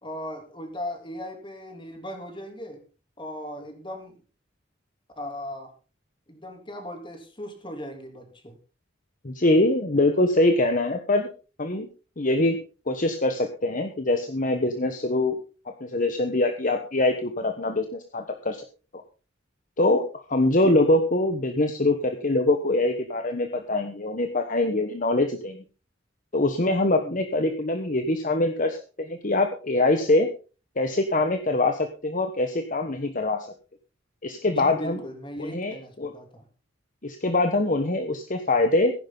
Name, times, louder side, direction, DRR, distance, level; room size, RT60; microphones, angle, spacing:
voice 1, 0.0-2.8 3.2-4.2 5.1-5.7 6.3-8.6 20.6-20.7 27.0-27.2 34.4-36.5, equal, 25° left, 4 dB, 3.1 m, -38 dB
voice 2, 9.2-11.3 11.6-11.9 12.2-12.6 12.9-15.4 15.8-18.6 19.8-25.6 26.3-30.3 30.8-33.5 34.2-35.0 35.4-36.1 37.0-38.9, left 2 dB, 45° left, 6 dB, 1.2 m, -23 dB
15.0 x 11.0 x 4.0 m, 0.35 s
head